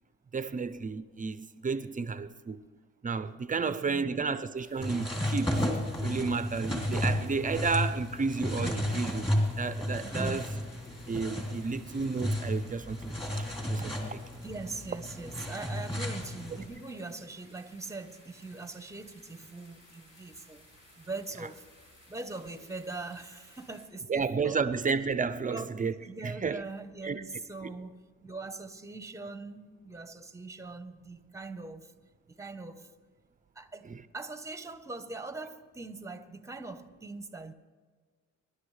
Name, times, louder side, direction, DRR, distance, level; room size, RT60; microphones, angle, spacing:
voice 1, 0.3-2.6 3.0-5.7 6.0-9.3 9.6-10.5 11.1-14.2 24.1-25.9 26.2-26.6 27.0-27.2 33.9-34.0, right 4 dB, 25° right, 0.6 m, -32 dB
voice 2, 3.5-4.2 10.0-10.5 14.4-20.7 21.0-21.7 22.1-24.6 25.5-25.7 26.0-31.9 32.3-32.9 33.5-37.5, right 3 dB, 10° right, 0.9 m, -42 dB
sound 1, 4.5-23.9, left 1 dB, 55° left, 5.6 m, -59 dB
sound 2, 4.8-16.7, equal, 20° left, 3.1 m, -33 dB
25.0 x 11.5 x 3.3 m
cardioid pair, 90°, 30 cm